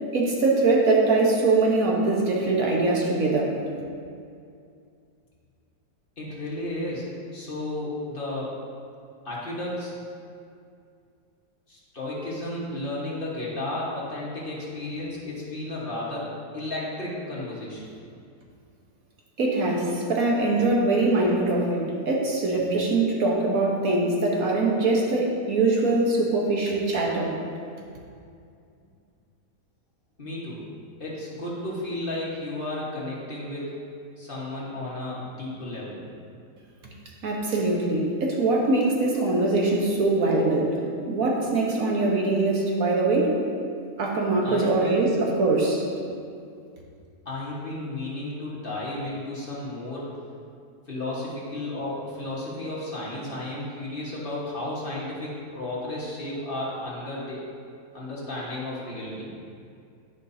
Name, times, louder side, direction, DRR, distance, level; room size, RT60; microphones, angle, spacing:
voice 1, 0.1-3.5 19.4-27.3 37.2-40.8 41.1-43.4 44.0-45.8, right 2 dB, 60° right, -2 dB, 1.5 m, -22 dB
voice 2, 6.2-7.1 7.3-8.6 9.2-9.9 11.7-17.9 30.2-30.6 31.0-33.8 34.2-36.0 44.4-45.0 47.2-50.1 50.9-57.4 57.9-59.3, left 1 dB, 35° left, -7 dB, 1.6 m, -33 dB
11.5 x 5.3 x 2.8 m, 2.4 s
omnidirectional pair, 1.7 m